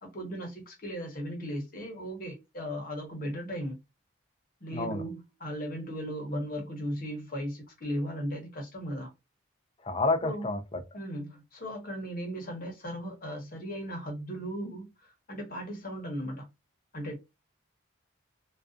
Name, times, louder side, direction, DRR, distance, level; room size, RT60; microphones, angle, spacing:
voice 1, 0.0-3.8 4.6-5.1 5.4-9.1 10.2-10.5 10.9-16.4 16.9-17.2, equal, 45° left, 0.8 m, -37 dB
voice 2, 4.7-5.0 9.8-10.8, left 2 dB, 25° left, 0.3 m, -29 dB
2.4 x 2.3 x 2.3 m
head